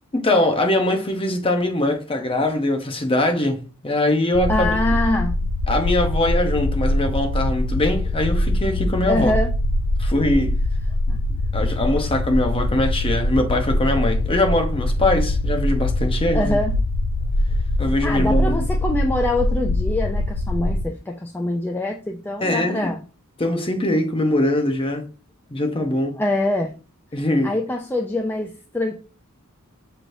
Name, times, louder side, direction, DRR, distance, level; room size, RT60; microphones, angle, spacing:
voice 1, 0.1-4.8 5.7-9.4 10.0-10.6 11.5-16.6 17.8-18.5 22.4-22.9 23.4-25.1 25.5-26.2 27.1-27.6, left 1 dB, 25° left, 0.8 m, -22 dB
sound 1, 4.3-20.9, left 1 dB, 90° left, 0.4 m, -23 dB
voice 2, 4.5-5.4 9.1-9.5 11.1-11.2 16.3-16.7 18.0-23.0 26.2-26.7 27.4-29.0, left 1 dB, 10° left, 0.4 m, -24 dB
6.0 x 3.3 x 2.6 m
head